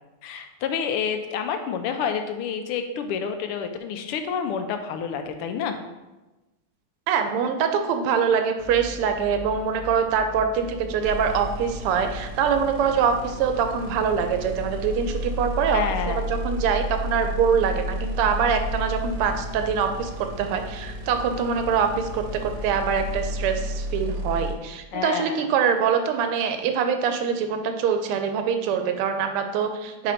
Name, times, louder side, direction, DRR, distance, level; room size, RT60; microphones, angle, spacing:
voice 1, 0.2-5.8 15.7-16.2 24.9-25.3, left 7 dB, 85° left, 7 dB, 1.6 m, -28 dB
voice 2, 7.1-30.1, right 6 dB, 85° right, 6 dB, 1.6 m, -24 dB
sound 1, 8.6-23.3, left 4 dB, 70° left, 0.8 m, -41 dB
sound 2, 11.0-24.5, equal, 50° right, 0.9 m, -32 dB
5.0 x 4.3 x 5.0 m, 1.1 s
omnidirectional pair, 2.4 m